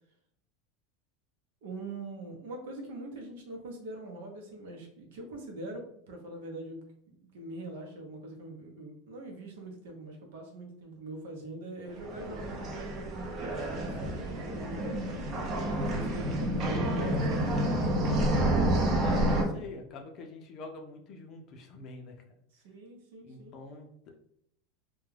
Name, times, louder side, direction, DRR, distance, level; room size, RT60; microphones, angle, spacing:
voice 1, 1.6-6.8 7.1-12.9 13.7-15.0 15.8-18.7 22.5-23.5, right 2 dB, 80° right, 2 dB, 0.8 m, -43 dB
sound 1, 11.9-19.4, right 1 dB, 40° right, 0.6 m, -29 dB
voice 2, 19.0-22.4 23.2-23.9, left 3 dB, 40° left, 3 dB, 0.5 m, -45 dB
2.3 x 2.2 x 3.2 m, 0.71 s
supercardioid pair, 140°, 0 cm